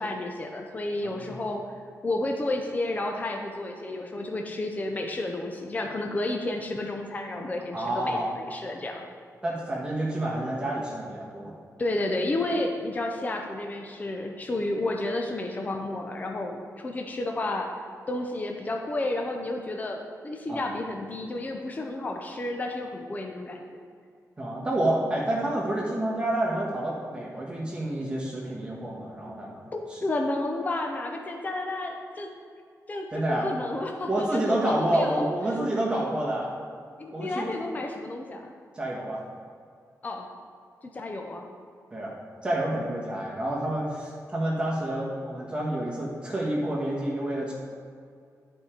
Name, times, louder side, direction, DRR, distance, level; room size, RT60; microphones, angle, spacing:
voice 1, 0.0-1.6 2.0-9.0 11.8-17.7 18.1-23.6 29.7-32.3 32.9-35.2 37.0-38.5 40.0-40.3 40.8-41.4, left 2 dB, 25° left, 2 dB, 0.6 m, -31 dB
voice 2, 1.0-1.4 7.7-8.3 9.4-11.5 20.5-20.6 24.4-29.6 29.9-30.0 33.1-33.5 34.1-36.5 37.1-37.5 38.7-39.2 41.9-42.1 42.4-47.5, right 1 dB, 15° right, -5 dB, 1.3 m, -28 dB
10.5 x 4.5 x 5.0 m, 2.3 s
wide cardioid pair, 155°, 6 cm